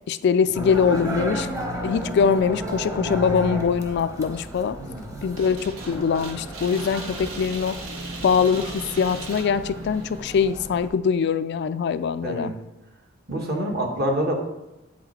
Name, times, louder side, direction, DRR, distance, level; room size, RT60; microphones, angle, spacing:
voice 1, 0.1-1.5 1.8-4.8 5.2-7.8 8.2-12.5, left 6 dB, 55° left, 12 dB, 0.3 m, -23 dB
sound 1, 0.5-10.9, equal, 15° right, 0.9 m, -33 dB
voice 2, 4.8-5.2 12.2-12.5 13.3-14.3, right 1 dB, 50° right, 1 dB, 1.3 m, -27 dB
sound 2, 5.4-10.4, right 3 dB, 85° right, 1.3 m, -39 dB
7.6 x 5.8 x 4.2 m, 0.98 s
head